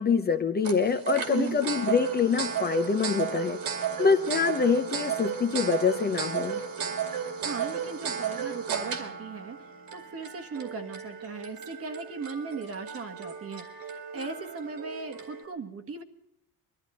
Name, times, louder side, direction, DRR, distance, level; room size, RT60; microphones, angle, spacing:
voice 1, 0.0-6.6, left 6 dB, 25° left, 7 dB, 0.7 m, -25 dB
sound 1, 0.6-15.4, right 7 dB, 60° right, 2.4 m, -34 dB
voice 2, 1.3-1.7 7.4-9.6 9.9-16.0, right 4 dB, 35° right, 8 dB, 1.4 m, -38 dB
21.0 x 12.5 x 4.2 m, 0.81 s
cardioid pair, 140°, 39 cm